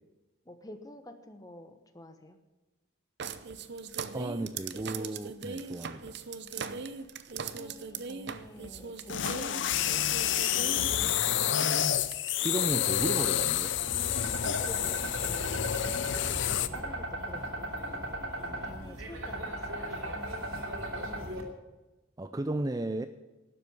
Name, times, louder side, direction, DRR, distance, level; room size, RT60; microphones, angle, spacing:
voice 1, 0.4-2.4 6.6-10.4 14.3-15.5 16.2-18.1 18.4-20.2, left 1 dB, 15° left, 7 dB, 1.2 m, -49 dB
sound 1, 3.2-11.1 11.8-11.9 12.1-12.5 13.2-13.3, right 5 dB, 55° right, 0.7 m, -39 dB
voice 2, 4.1-6.1 12.4-13.7 22.2-23.1, right 2 dB, 15° right, 10 dB, 0.4 m, -34 dB
sound 2, 8.7-16.7, left 10 dB, 60° left, 0.6 m, -29 dB
sound 3, 13.6-21.4, right 1 dB, 75° right, 2.9 m, -37 dB
12.0 x 7.7 x 9.8 m, 1.1 s
head